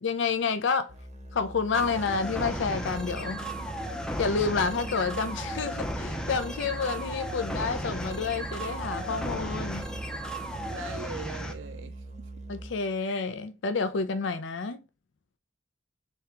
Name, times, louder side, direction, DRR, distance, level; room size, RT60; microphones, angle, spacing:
voice 1, 0.0-0.9 1.3-3.4 4.2-9.8 12.5-14.8, left 5 dB, 70° left, 0.5 m, -29 dB
Musical instrument, 0.9-12.9, right 3 dB, 35° right, 0.7 m, -41 dB
sound 1, 1.7-11.5, equal, 5° left, 0.4 m, -35 dB
voice 2, 10.7-12.3, right 5 dB, 70° right, 0.5 m, -41 dB
3.6 x 3.3 x 2.9 m
head